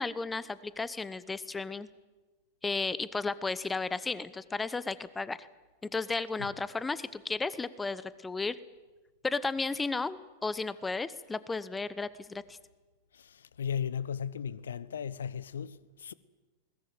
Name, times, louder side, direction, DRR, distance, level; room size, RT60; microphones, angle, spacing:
voice 1, 0.0-1.9 2.6-5.5 5.8-8.6 9.2-12.6, left 3 dB, 10° left, 1.0 m, -34 dB
voice 2, 13.1-16.1, left 8 dB, 65° left, 0.9 m, -36 dB
20.5 x 20.0 x 9.3 m
figure-of-eight pair, 90°, 0 cm